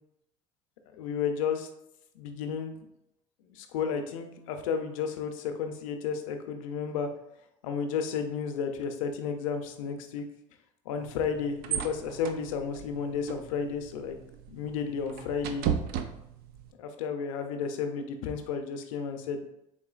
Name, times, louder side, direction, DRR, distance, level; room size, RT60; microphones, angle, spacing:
voice 1, 1.0-1.7 2.1-2.8 3.5-7.1 7.6-10.2 10.9-14.2 14.5-15.7 16.8-19.4, left 6 dB, 90° left, 6 dB, 0.5 m, -32 dB
sound 1, 11.0-16.7, right 8 dB, 65° right, 0.5 m, -36 dB
3.8 x 3.5 x 2.4 m, 0.81 s
supercardioid pair, 85°, 17 cm